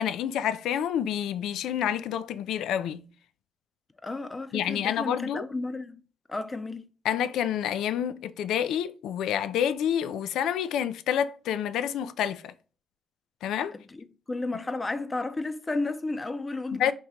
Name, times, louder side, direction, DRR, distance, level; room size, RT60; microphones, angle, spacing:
voice 1, 0.0-3.0 4.5-5.4 7.0-12.5 13.4-13.8 16.7-16.9, left 9 dB, 80° left, 0.3 m, -28 dB
voice 2, 4.0-6.0 6.3-6.9 13.7-16.9, left 2 dB, 25° left, 0.5 m, -33 dB
3.6 x 2.9 x 4.2 m
cardioid pair, 90°, 0 cm